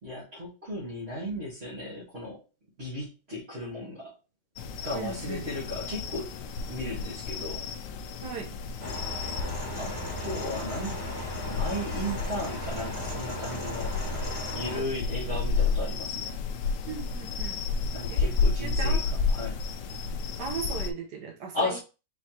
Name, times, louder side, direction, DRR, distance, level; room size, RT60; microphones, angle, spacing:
voice 1, 0.0-2.4 2.8-4.1 4.8-6.3 6.7-7.7 9.8-11.0 11.4-14.0 14.5-16.3 17.9-19.0 19.3-19.6 21.5-21.8, left 1 dB, 40° right, 1.7 m, -35 dB
sound 1, 4.6-20.9, left 4 dB, 85° left, 1.2 m, -31 dB
voice 2, 4.9-5.5 8.2-8.5 14.7-14.9 16.9-17.6 18.1-18.2 18.6-19.0 20.4-21.8, right 6 dB, 80° right, 1.5 m, -37 dB
sound 2, 8.8-14.8, equal, 20° left, 1.6 m, -36 dB
4.8 x 3.1 x 2.9 m
omnidirectional pair, 1.7 m